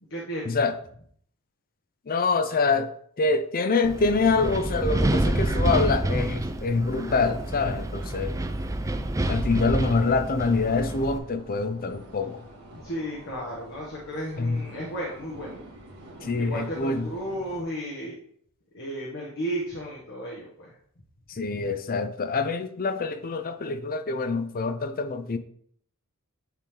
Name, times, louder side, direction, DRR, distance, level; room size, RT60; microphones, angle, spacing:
voice 1, 0.1-0.6 12.7-15.6 16.4-18.1 18.7-20.7, equal, 60° left, 1.5 m, -34 dB
voice 2, 2.1-2.9 3.2-8.4 9.3-12.4 14.4-14.6 16.2-17.1 21.3-25.4, left 4 dB, 40° left, 0.6 m, -25 dB
Wind, 3.8-11.2, right 1 dB, 15° right, 0.4 m, -28 dB
sound 1, 7.0-17.6, right 1 dB, 75° right, 1.7 m, -47 dB
10.0 x 3.4 x 3.7 m
head